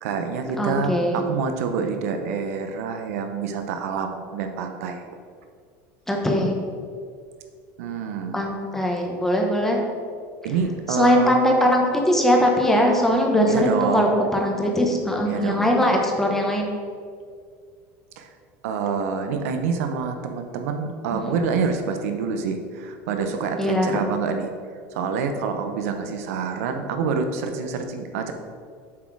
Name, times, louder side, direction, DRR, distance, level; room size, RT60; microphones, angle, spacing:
voice 1, 0.0-5.0 7.8-8.4 10.4-11.3 13.5-14.1 15.3-15.7 18.2-18.3 18.6-24.5 24.9-28.3, right 5 dB, 85° right, 6 dB, 0.7 m, -27 dB
voice 2, 0.6-1.2 6.1-6.6 8.3-9.8 10.9-16.7 21.1-21.4 23.6-24.0, equal, 5° left, 0 dB, 0.9 m, -21 dB
7.2 x 4.3 x 4.7 m, 2.1 s
supercardioid pair, 145°, 8 cm